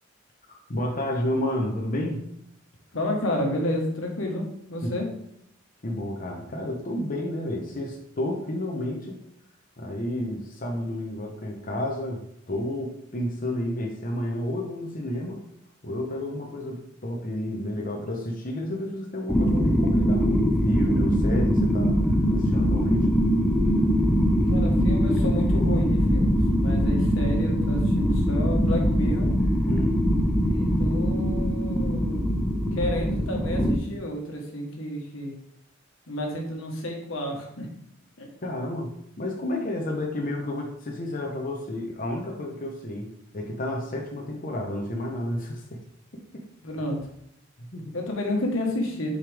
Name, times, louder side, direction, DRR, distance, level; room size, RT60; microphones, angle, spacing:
voice 1, 0.5-2.2 4.8-4.9 5.8-9.2 9.8-15.4 15.8-22.0 22.3-23.1 29.6-30.0 38.4-38.9 39.2-45.8 46.1-46.4 47.6-47.9, left 1 dB, 45° left, 0 dB, 0.9 m, -31 dB
voice 2, 2.9-5.1 24.5-29.3 30.5-32.3 32.7-35.3 36.1-37.7 38.2-38.3 46.6-47.0 47.9-49.2, left 1 dB, 85° left, 0 dB, 1.5 m, -30 dB
sound 1, 19.3-33.7, equal, 5° left, 0.6 m, -22 dB
6.5 x 5.1 x 3.5 m, 0.73 s
head